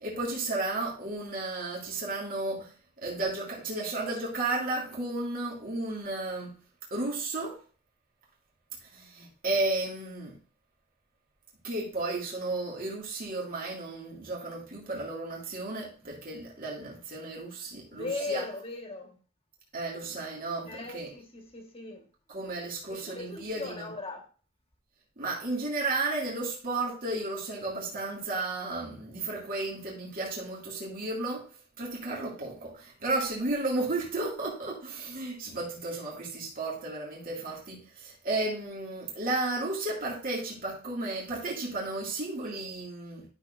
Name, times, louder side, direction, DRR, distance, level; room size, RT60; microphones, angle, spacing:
voice 1, 0.0-2.7 3.0-6.5 6.9-7.6 8.9-10.3 11.6-18.4 19.7-21.1 22.3-23.9 25.2-31.5 31.8-43.3, right 2 dB, 45° right, -4 dB, 2.4 m, -33 dB
voice 2, 17.9-19.2 20.6-22.0 22.9-24.2, left 3 dB, 30° left, 3 dB, 1.6 m, -38 dB
11.5 x 6.2 x 2.6 m, 0.39 s
head